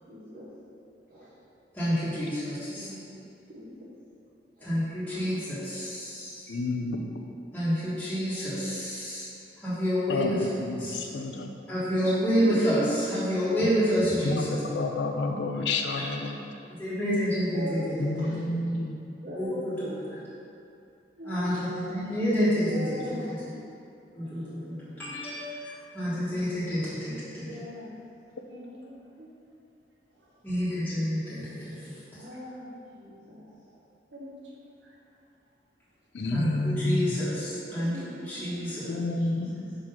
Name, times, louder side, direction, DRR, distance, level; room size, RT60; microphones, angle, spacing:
voice 1, 0.1-0.5 1.1-1.4 2.7-3.2 3.5-3.7 4.6-4.8 5.1-5.2 17.5-17.9 18.2-18.4 19.2-19.6 22.2-23.3 27.0-27.9 32.1-33.5 38.6-39.2 39.5-39.6, equal, 50° right, -9 dB, 1.0 m, -42 dB
voice 2, 1.7-2.9 4.6-6.4 7.5-9.2 9.6-10.4 10.8-11.0 11.7-14.6 16.8-17.9 18.2-18.3 19.3-20.2 21.2-23.2 24.1-27.5 30.4-31.9 36.3-37.9 38.3-38.9, equal, 10° left, -13 dB, 1.4 m, -28 dB
voice 3, 6.5-7.0 10.1-11.5 14.2-16.5 18.0-19.0 36.1-37.2 38.9-39.8, left 2 dB, 75° left, 4 dB, 0.5 m, -30 dB
voice 4, 21.2-22.1 22.9-23.5 24.2-25.2 28.5-29.3 32.3-32.4 34.1-34.3 34.8-34.9 36.2-36.3 37.8-38.7 39.4-39.5, left 1 dB, 85° right, -4 dB, 1.1 m, -44 dB
4.7 x 3.8 x 5.7 m, 2.6 s
head